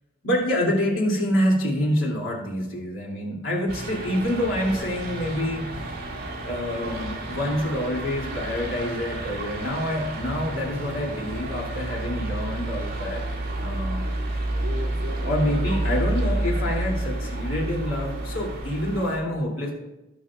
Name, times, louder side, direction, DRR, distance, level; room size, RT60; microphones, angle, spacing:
voice 1, 0.2-5.8 6.4-13.2 13.6-14.2 15.2-19.7, equal, 85° left, -3 dB, 2.8 m, -27 dB
sound 1, 3.7-19.2, right 1 dB, 50° right, 2.2 m, -30 dB
17.5 x 6.5 x 2.4 m, 1.0 s
head